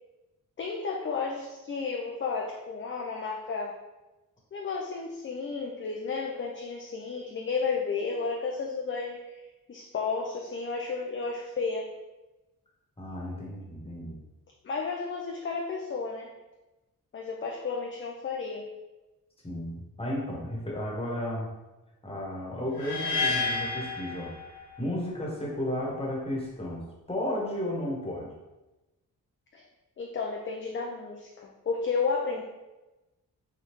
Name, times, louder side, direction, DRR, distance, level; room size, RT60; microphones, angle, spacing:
voice 1, 0.6-3.7 4.5-9.3 9.7-11.9 14.6-16.3 17.1-18.7 29.5-29.6 30.0-32.4, left 4 dB, 35° left, 0 dB, 0.5 m, -32 dB
voice 2, 13.0-14.2 19.4-21.5 22.0-24.3 24.8-28.3, left 1 dB, 15° left, -4 dB, 1.2 m, -33 dB
sound 1, 22.8-24.9, left 3 dB, 90° left, 0.6 m, -30 dB
3.5 x 2.3 x 3.0 m, 1.1 s
supercardioid pair, 45°, 37 cm